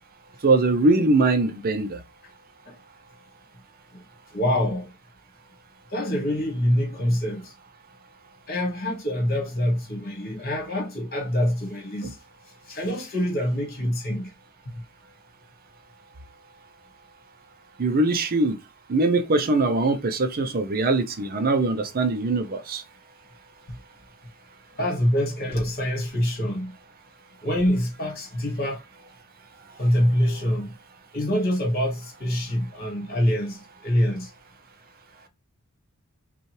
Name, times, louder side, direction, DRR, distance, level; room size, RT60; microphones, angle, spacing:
voice 1, 0.4-2.0 17.8-18.6 18.9-22.8, right 2 dB, 40° right, 0.5 m, -22 dB
voice 2, 4.3-4.9 5.9-7.5 8.5-12.2 12.7-14.3 14.7-14.8 23.7-23.8 24.8-26.8 27.4-28.8 29.8-30.8 31.1-34.3, equal, 45° left, 1.9 m, -25 dB
5.4 x 2.4 x 3.1 m
head